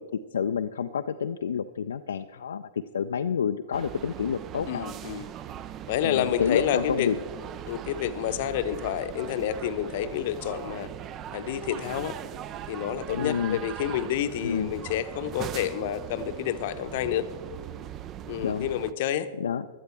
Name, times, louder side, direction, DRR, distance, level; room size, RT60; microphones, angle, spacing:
voice 1, 0.1-4.9 6.0-7.2 13.1-13.6 14.4-14.7 18.4-18.7 19.4-19.7, left 7 dB, 70° left, 7 dB, 0.3 m, -29 dB
sound 1, 3.7-18.9, right 10 dB, 30° right, 0.4 m, -40 dB
voice 2, 4.7-5.3 5.9-7.1 7.7-10.9 11.3-12.2 12.7-17.3 18.3-19.3, left 10 dB, 50° left, 10 dB, 0.7 m, -29 dB
17.0 x 12.0 x 3.3 m, 1.5 s
figure-of-eight pair, 105°, 0 cm